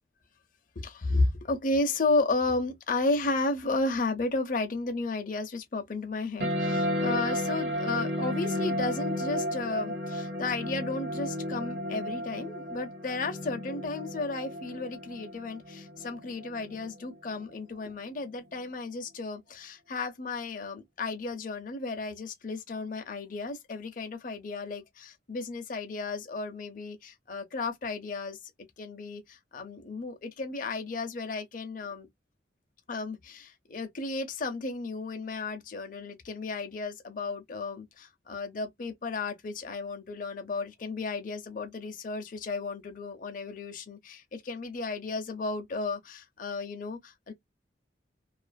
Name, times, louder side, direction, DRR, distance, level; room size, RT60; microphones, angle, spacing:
voice 1, 0.8-28.4 28.8-32.1 32.9-47.3, left 3 dB, 45° left, 0.6 m, -33 dB
sound 1, 6.4-17.4, equal, 70° right, 0.8 m, -33 dB
2.5 x 2.3 x 2.2 m
head